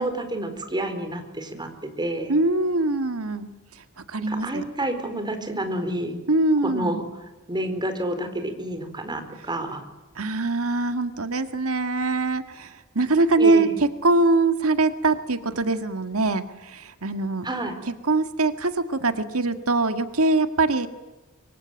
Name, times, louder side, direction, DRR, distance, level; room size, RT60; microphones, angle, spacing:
voice 1, 0.0-2.3 4.3-6.2 6.6-7.0 7.5-9.8 13.4-13.8 17.4-17.8, right 1 dB, 20° right, 7 dB, 4.3 m, -29 dB
voice 2, 2.3-4.6 6.3-7.0 10.2-13.7 14.0-17.5 18.0-20.9, right 2 dB, 70° right, 9 dB, 1.9 m, -23 dB
25.0 x 24.5 x 9.1 m, 1.1 s
head